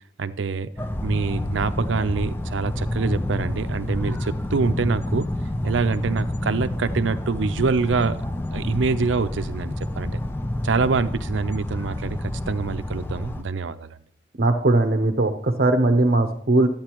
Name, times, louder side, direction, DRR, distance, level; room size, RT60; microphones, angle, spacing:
voice 1, 0.2-0.7 1.0-5.3 5.6-8.2 8.5-10.1 10.6-14.0, right 4 dB, 85° right, 12 dB, 0.6 m, -25 dB
sound 1, 0.8-13.4, left 1 dB, 10° left, 0.4 m, -28 dB
voice 2, 14.4-16.7, right 2 dB, 55° right, 6 dB, 0.8 m, -19 dB
11.5 x 8.8 x 3.0 m, 0.62 s
head